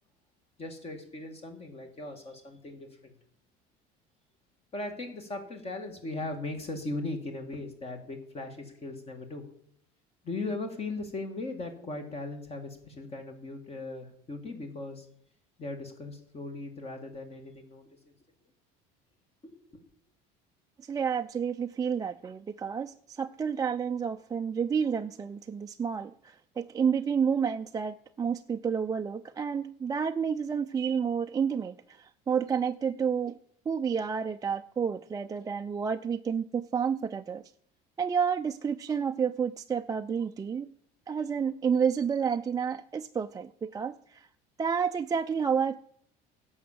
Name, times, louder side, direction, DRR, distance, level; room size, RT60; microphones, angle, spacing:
voice 1, 0.6-3.1 4.7-9.5 10.2-15.1 15.6-18.0 19.4-19.8, left 2 dB, 35° left, 5 dB, 2.2 m, -38 dB
voice 2, 20.8-33.4 33.7-37.5 38.0-40.7 41.1-44.3 44.6-45.8, right 6 dB, 20° right, 5 dB, 0.4 m, -30 dB
11.0 x 7.2 x 7.4 m, 0.66 s
cardioid pair, 115°, 18 cm